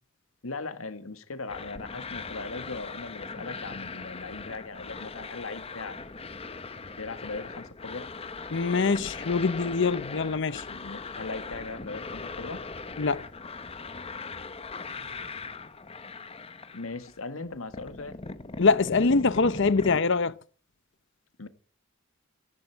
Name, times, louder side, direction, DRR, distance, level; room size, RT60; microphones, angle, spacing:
voice 1, 0.4-6.0 7.0-8.1 10.7-12.6 16.7-18.2 21.4-21.5, left 3 dB, 80° left, 1.7 m, -39 dB
sound 1, 1.5-17.2 17.5-20.0, left 4 dB, 30° left, 1.0 m, -40 dB
voice 2, 8.5-10.7 13.0-13.3 18.6-20.4, left 4 dB, 60° left, 0.7 m, -24 dB
18.0 x 14.5 x 4.6 m
head